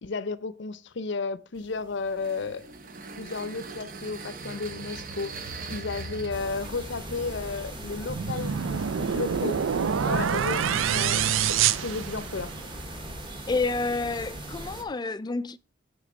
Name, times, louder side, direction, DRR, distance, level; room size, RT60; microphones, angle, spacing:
voice 1, 0.0-2.7 3.2-9.6 10.1-12.5, left 4 dB, 60° left, 0.6 m, -33 dB
sound 1, 1.6-12.0, right 3 dB, 45° right, 0.8 m, -43 dB
sound 2, 6.3-14.8, right 1 dB, 25° right, 1.3 m, -39 dB
sound 3, 8.1-12.7, right 8 dB, 75° right, 0.4 m, -26 dB
voice 2, 13.5-15.6, left 3 dB, 20° left, 0.3 m, -29 dB
9.2 x 3.7 x 6.3 m
head